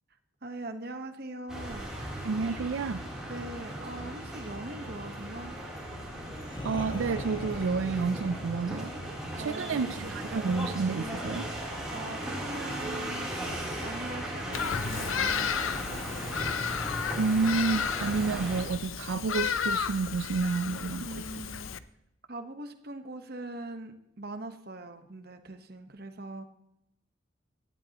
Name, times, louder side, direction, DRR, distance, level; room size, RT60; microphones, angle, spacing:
voice 1, 0.4-1.9 3.3-5.5 9.4-10.2 11.9-16.6 20.9-21.7 22.3-26.4, right 2 dB, 50° right, 7 dB, 1.1 m, -42 dB
sound 1, 1.5-18.6, right 1 dB, 5° right, 3.2 m, -37 dB
voice 2, 2.2-3.0 6.6-8.9 9.4-11.5 17.2-21.2, right 4 dB, 75° right, 11 dB, 0.4 m, -30 dB
sound 2, 5.7-11.5, equal, 25° left, 1.4 m, -43 dB
Bird vocalization bird call bird song, 14.5-21.8, left 7 dB, 85° left, 0.6 m, -33 dB
17.5 x 12.0 x 2.9 m, 0.85 s
head